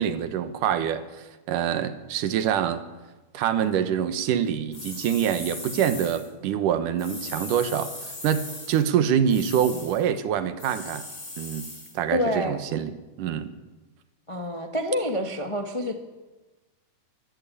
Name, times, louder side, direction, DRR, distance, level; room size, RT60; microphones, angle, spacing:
voice 1, 0.0-2.8 3.3-11.0 11.4-11.7 11.9-12.9 13.2-13.5, right 9 dB, 85° right, 11 dB, 2.8 m, -25 dB
sound 1, 4.7-6.3 7.0-8.9 9.3-10.0 10.6-12.0, left 2 dB, 25° left, 4.7 m, -38 dB
voice 2, 12.1-12.6 14.3-16.0, left 1 dB, 45° left, 5 dB, 0.4 m, -27 dB
24.0 x 15.0 x 8.5 m, 1.2 s
omnidirectional pair, 3.6 m